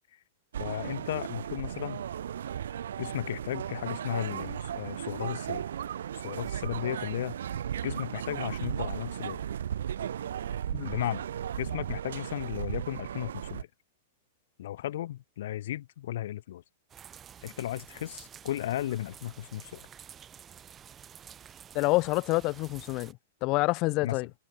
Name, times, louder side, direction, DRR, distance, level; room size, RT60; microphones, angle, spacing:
sound 1, 0.5-13.6, right 9 dB, 85° right, 0.7 m, -36 dB
voice 1, 0.6-2.0 3.0-5.7 6.2-7.4 7.8-9.4 10.8-11.3 11.6-13.7 14.6-16.6 17.4-19.9 24.0-24.2, left 13 dB, 70° left, 0.9 m, -35 dB
sound 2, 16.9-23.1, right 8 dB, 20° right, 4.9 m, -50 dB
voice 2, 21.7-23.1 23.4-24.3, left 23 dB, 35° left, 0.8 m, -27 dB
hypercardioid pair, 150°, 0 cm